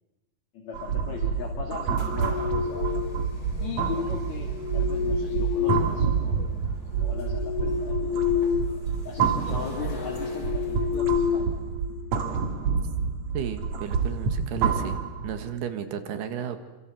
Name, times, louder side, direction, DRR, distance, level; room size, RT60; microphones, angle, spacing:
voice 1, 0.5-2.9 3.6-6.4 7.0-8.3 9.1-11.6, left 6 dB, 50° left, 0 dB, 3.8 m, -37 dB
sound 1, 0.7-15.5, right 6 dB, 50° right, 3.2 m, -28 dB
sound 2, 1.7-11.0, left 2 dB, 30° left, 5.1 m, -45 dB
sound 3, 1.8-3.3 4.3-6.5 6.9-8.8 9.1-9.3 9.8-12.2, left 8 dB, 80° left, 3.3 m, -29 dB
voice 2, 13.3-15.0 15.2-16.6, right 8 dB, 90° right, 8 dB, 3.8 m, -33 dB
28.0 x 26.0 x 7.6 m, 1.1 s
omnidirectional pair, 4.5 m